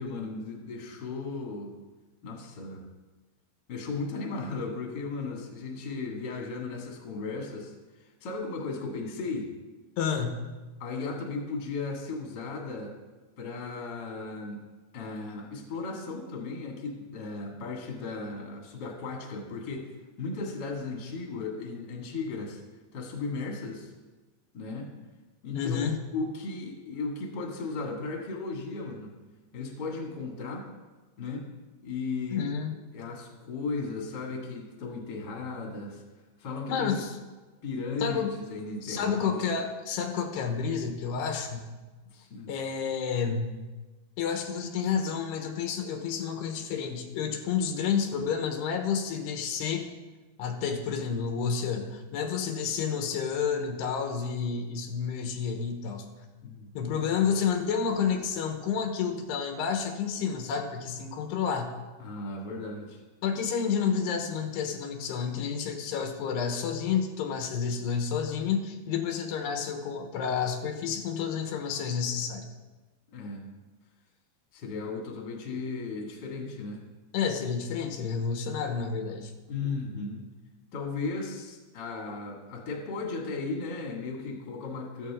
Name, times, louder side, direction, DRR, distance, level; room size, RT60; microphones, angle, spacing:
voice 1, 0.0-1.8 2.2-2.8 3.7-9.5 10.8-13.0 13.4-14.6 14.9-22.6 22.9-23.9 24.5-24.9 25.4-29.1 29.5-30.7 31.2-31.4 31.8-32.4 32.9-36.0 36.4-37.0 37.6-39.4 42.1-42.5 56.4-56.7 62.0-63.0 73.1-73.5 74.5-76.8 79.5-80.2 80.7-85.1, left 3 dB, 35° left, 0 dB, 2.1 m, -36 dB
voice 2, 10.0-10.5 25.5-26.0 32.3-32.7 36.7-37.1 38.0-38.4 38.8-41.7 42.5-43.4 44.2-49.9 50.4-56.1 56.7-61.7 63.2-72.5 77.1-79.3 79.6-79.7, left 6 dB, 85° left, 4 dB, 3.3 m, -30 dB
14.5 x 13.5 x 3.7 m, 1.2 s
omnidirectional pair, 4.7 m